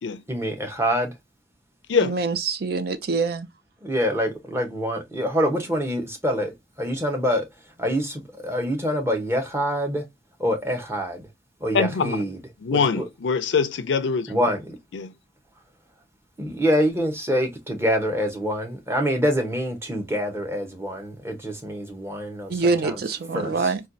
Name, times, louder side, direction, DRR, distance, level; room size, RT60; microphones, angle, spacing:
voice 1, 0.3-1.1 3.8-6.5 6.8-7.5 7.8-10.0 10.4-11.2 11.6-12.4 12.7-13.0 14.3-14.8 16.4-23.0 23.3-23.7, equal, 15° right, 0.8 m, -25 dB
voice 2, 2.0-3.5 22.5-23.8, right 4 dB, 55° right, 0.4 m, -25 dB
voice 3, 11.7-12.2 12.6-14.4 14.9-15.1, left 5 dB, 80° left, 0.4 m, -23 dB
4.2 x 2.3 x 2.5 m
head